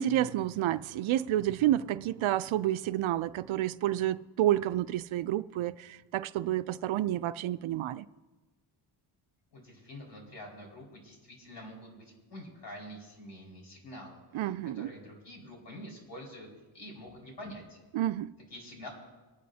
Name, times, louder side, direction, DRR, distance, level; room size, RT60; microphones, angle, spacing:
voice 1, 0.0-8.1 14.3-14.9 17.9-18.3, right 13 dB, 70° right, 0.5 m, -29 dB
voice 2, 9.5-16.5 16.7-17.8 18.5-18.9, equal, 55° left, 5.1 m, -47 dB
23.5 x 10.5 x 2.8 m
cardioid pair, 105°, 49 cm